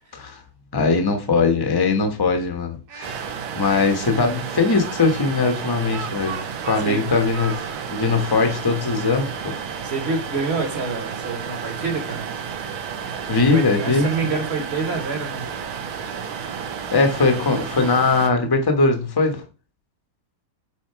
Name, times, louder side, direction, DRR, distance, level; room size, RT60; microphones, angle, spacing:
voice 1, 0.7-3.2 3.5-9.5 13.3-14.1 16.9-19.4, left 4 dB, 20° left, 0.6 m, -20 dB
Speech, 2.9-3.9 4.8-7.8, right 8 dB, 70° right, 1.0 m, -37 dB
sound 1, 3.0-18.3, right 7 dB, 90° right, 1.7 m, -32 dB
voice 2, 6.8-7.1 9.8-12.2 13.5-15.4, right 4 dB, 40° right, 1.1 m, -27 dB
6.2 x 4.3 x 4.6 m
omnidirectional pair, 2.2 m